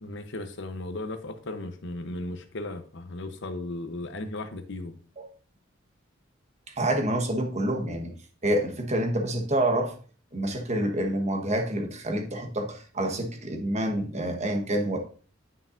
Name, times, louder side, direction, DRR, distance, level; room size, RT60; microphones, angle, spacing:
voice 1, 0.0-4.9, left 2 dB, 65° left, 8 dB, 0.9 m, -36 dB
voice 2, 6.8-8.1 8.4-9.9 10.3-15.0, right 1 dB, 35° right, 4 dB, 1.2 m, -27 dB
9.7 x 5.6 x 2.6 m, 0.42 s
head